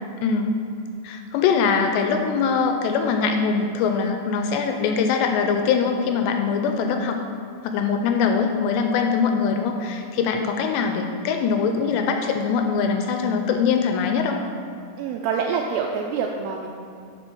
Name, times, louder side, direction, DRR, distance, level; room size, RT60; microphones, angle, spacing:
voice 1, 0.2-0.5 1.0-7.2 7.6-14.4, left 5 dB, 80° left, 5 dB, 2.6 m, -22 dB
voice 2, 15.0-16.7, right 6 dB, 85° right, 1 dB, 2.4 m, -26 dB
7.8 x 6.2 x 6.0 m, 2.3 s
omnidirectional pair, 5.2 m